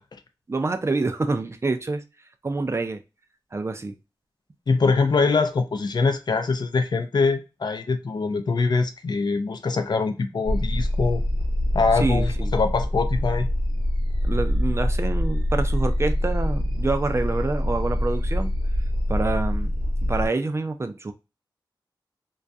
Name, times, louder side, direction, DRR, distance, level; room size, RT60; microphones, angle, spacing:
voice 1, 0.5-2.0 2.4-3.0 3.5-3.9 12.0-12.5 14.2-18.5 19.1-19.7 20.1-21.1, right 3 dB, 30° right, 0.3 m, -27 dB
voice 2, 4.7-11.2 11.7-13.5, left 4 dB, 55° left, 0.4 m, -23 dB
sound 1, 10.4-20.3, left 1 dB, 70° right, 0.7 m, -25 dB
2.3 x 2.1 x 2.5 m
wide cardioid pair, 70°, 8 cm